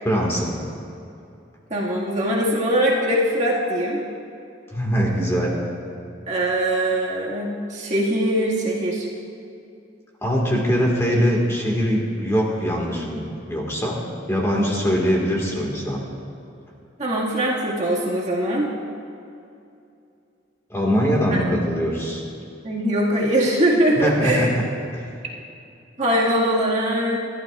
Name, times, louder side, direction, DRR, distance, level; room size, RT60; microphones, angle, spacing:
voice 1, 0.0-0.6 4.7-5.6 10.2-14.0 14.3-16.0 20.7-22.2 24.0-24.6 24.9-25.0, equal, 15° left, -2 dB, 1.9 m, -22 dB
voice 2, 1.7-4.0 6.3-9.1 17.0-18.7 21.3-21.4 22.6-24.5 26.0-27.2, right 1 dB, 40° right, -4 dB, 2.0 m, -22 dB
28.5 x 12.0 x 2.5 m, 2.6 s
head